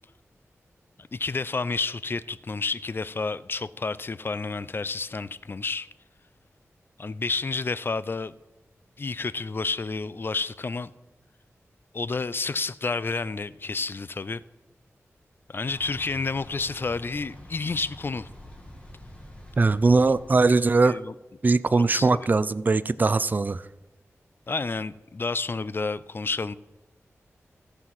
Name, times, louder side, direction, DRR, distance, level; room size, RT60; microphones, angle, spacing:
voice 1, 1.0-5.9 7.0-8.3 9.0-10.9 11.9-14.4 15.5-18.3 20.8-21.1 21.7-22.1 24.5-26.5, left 4 dB, 45° left, 0.4 m, -30 dB
Thunder / Bicycle, 15.7-20.7, left 1 dB, 25° left, 2.2 m, -46 dB
voice 2, 19.6-21.0 21.4-23.7, right 3 dB, 35° right, 0.3 m, -21 dB
14.5 x 5.6 x 5.9 m
cardioid pair, 60°, 5 cm